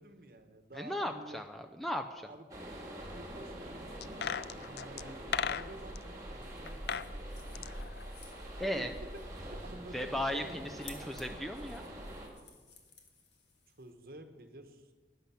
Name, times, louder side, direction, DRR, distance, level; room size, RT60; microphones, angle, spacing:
voice 1, 0.0-1.4 2.3-2.5 3.1-7.6 8.7-8.9 9.4-10.8 13.8-14.9, right 1 dB, 55° right, 7 dB, 1.1 m, -51 dB
voice 2, 0.7-2.3 7.5-7.7 8.6-8.9 9.9-11.8, left 1 dB, ahead, 4 dB, 0.4 m, -36 dB
sound 1, 2.5-12.3, right 1 dB, 20° right, 2.0 m, -45 dB
sound 2, 4.0-6.0 6.7-7.1 7.4-8.8 9.0-9.1, left 7 dB, 65° left, 0.4 m, -37 dB
sound 3, 6.4-13.9, left 5 dB, 85° left, 1.8 m, -58 dB
11.5 x 10.0 x 5.8 m, 1.3 s
head